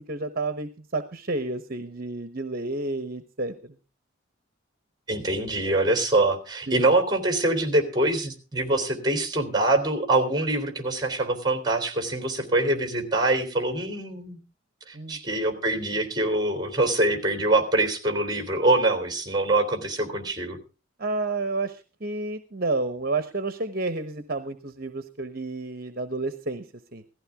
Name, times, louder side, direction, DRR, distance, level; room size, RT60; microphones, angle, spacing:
voice 1, 0.0-3.7 6.7-6.9 14.9-15.2 21.0-26.6 26.9-27.0, right 3 dB, 50° right, 10 dB, 1.0 m, -30 dB
voice 2, 5.1-14.4 14.9-20.6, right 2 dB, 20° right, 7 dB, 3.3 m, -24 dB
16.5 x 14.5 x 3.6 m, 0.33 s
head